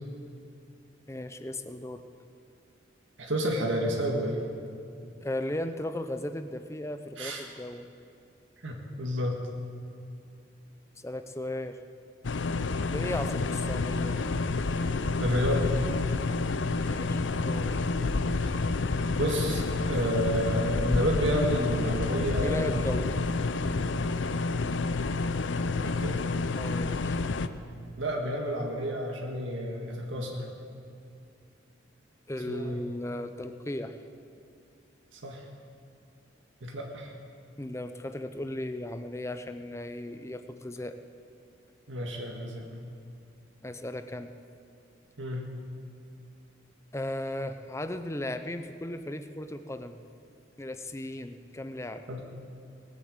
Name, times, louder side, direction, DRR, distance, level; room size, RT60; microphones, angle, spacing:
voice 1, 1.1-2.0 5.2-7.9 11.0-11.8 12.9-14.2 16.9-17.8 22.4-23.2 26.5-27.2 32.3-34.0 37.6-41.0 43.6-44.3 46.9-50.0 50.6-52.0, left 1 dB, 15° left, 9 dB, 0.6 m, -36 dB
voice 2, 3.2-4.4 7.2-7.4 8.6-9.4 15.2-15.7 19.1-22.8 25.8-26.2 28.0-30.5 32.5-32.8 35.1-35.5 36.6-37.1 41.9-42.7 45.2-45.5 52.1-52.2, equal, 85° right, 0 dB, 1.8 m, -30 dB
sound 1, 12.2-27.5, left 3 dB, 75° left, 0.6 m, -29 dB
19.0 x 8.1 x 7.9 m, 2.5 s
head